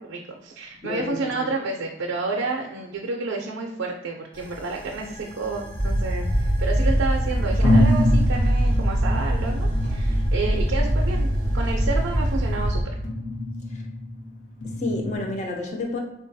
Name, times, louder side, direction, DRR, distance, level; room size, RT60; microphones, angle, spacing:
voice 1, 0.0-12.9, right 3 dB, 90° right, 1 dB, 0.4 m, -30 dB
voice 2, 0.8-1.5 13.7-13.8 14.6-16.0, left 2 dB, 35° left, 1 dB, 0.3 m, -30 dB
sound 1, 4.4-12.8, equal, 20° left, 1.1 m, -23 dB
sound 2, 5.2-6.6 7.1-7.2 7.6-15.2, left 1 dB, 85° left, 0.8 m, -28 dB
3.8 x 2.2 x 2.6 m, 0.94 s
head